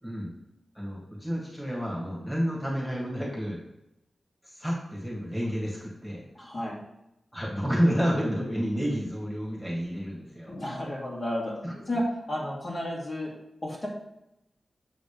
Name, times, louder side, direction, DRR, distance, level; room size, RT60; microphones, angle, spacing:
voice 1, 0.7-3.6 4.5-6.2 7.3-10.5 11.6-11.7, equal, 5° left, -4 dB, 2.2 m, -30 dB
voice 2, 6.3-6.8 10.5-11.5 11.9-12.0 12.3-13.3 13.6-13.9, left 1 dB, 45° left, -4 dB, 2.3 m, -32 dB
7.7 x 4.1 x 5.2 m, 0.85 s
wide cardioid pair, 95°, 0 cm